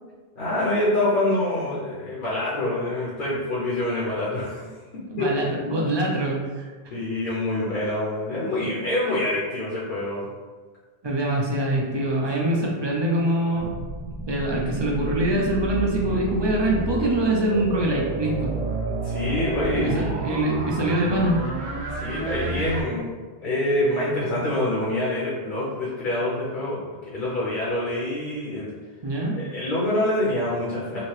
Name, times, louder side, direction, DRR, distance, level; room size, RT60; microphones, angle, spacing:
voice 1, 0.4-4.6 4.9-5.4 6.9-10.3 12.4-12.8 19.0-20.1 21.9-23.0 23.4-28.7 29.4-31.1, left 1 dB, 55° left, -7 dB, 0.8 m, -26 dB
voice 2, 5.1-6.7 11.0-13.7 14.3-18.5 19.7-21.5 29.0-29.4, right 1 dB, 45° right, -2 dB, 0.3 m, -24 dB
sound 1, 13.5-22.8, right 2 dB, 85° right, 0.9 m, -30 dB
2.9 x 2.7 x 3.1 m, 1.4 s
omnidirectional pair, 1.1 m